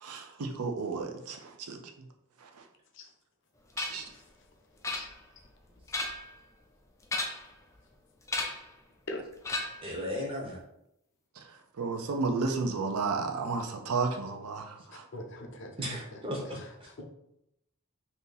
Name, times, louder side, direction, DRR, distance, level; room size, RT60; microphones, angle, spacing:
voice 1, 0.0-1.8 2.4-2.5 3.8-4.1 11.8-15.0, right 4 dB, 80° right, 4 dB, 0.5 m, -32 dB
sound 1, 3.8-4.1 4.8-5.4 5.8-6.4 7.0-7.6 8.3-8.7 9.4-9.9, left 2 dB, 15° left, 0.3 m, -34 dB
voice 2, 3.9-4.3 4.8-5.1 9.1-9.2 14.9-16.2 16.6-17.0, left 1 dB, 55° left, 2 dB, 0.6 m, -44 dB
voice 3, 9.8-10.6 15.8-16.9, equal, 25° right, -1 dB, 0.6 m, -36 dB
2.7 x 2.6 x 3.8 m, 0.81 s
head